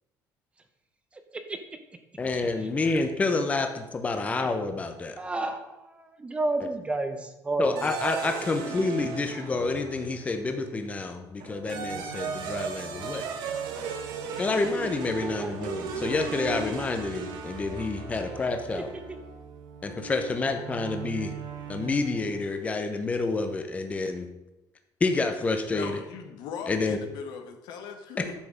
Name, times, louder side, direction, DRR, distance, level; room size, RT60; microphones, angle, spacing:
voice 1, 2.2-5.2 6.6-6.7 7.6-13.3 14.4-18.9 19.8-21.3 21.7-24.3 25.0-26.0 26.7-27.0 28.2-28.3, left 3 dB, 20° left, 6 dB, 0.8 m, -28 dB
voice 2, 5.2-7.9 15.2-15.5, right 2 dB, 15° right, 7 dB, 0.8 m, -31 dB
sound 1, 7.8-10.3 11.4-22.5, right 6 dB, 85° right, 1.5 m, -37 dB
voice 3, 25.7-28.3, left 6 dB, 75° left, 5 dB, 1.5 m, -39 dB
10.5 x 6.9 x 5.0 m, 0.94 s
cardioid pair, 155°, 7 cm